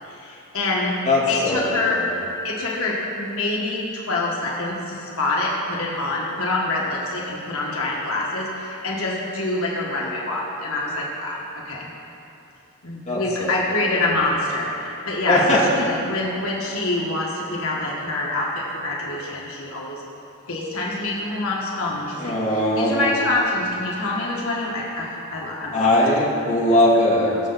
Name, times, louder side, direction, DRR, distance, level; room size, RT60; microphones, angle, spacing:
voice 1, 0.0-0.9 1.3-2.0 2.4-11.9 12.8-15.6 15.9-20.0 20.5-25.7 26.7-26.8 27.2-27.4, left 2 dB, 70° left, -4 dB, 1.7 m, -26 dB
voice 2, 1.1-2.1 13.1-13.5 13.8-14.1 15.3-15.6 22.2-23.0 25.7-27.3, left 1 dB, 30° left, -5 dB, 2.2 m, -20 dB
20.5 x 6.8 x 4.1 m, 2.9 s
head